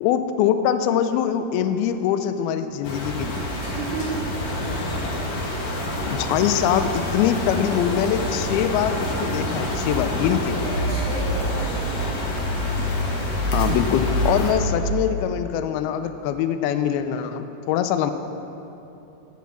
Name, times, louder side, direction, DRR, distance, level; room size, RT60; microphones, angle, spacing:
voice 1, 0.0-3.5 6.1-10.6 13.5-18.1, left 9 dB, 85° left, 9 dB, 2.2 m, -23 dB
sound 1, 2.8-14.5, left 1 dB, 55° left, 1.9 m, -26 dB
voice 2, 3.6-4.3 5.8-6.0 10.5-11.7, right 3 dB, 80° right, -7 dB, 3.5 m, -32 dB
9.2 x 7.6 x 7.3 m, 2.9 s
omnidirectional pair, 4.8 m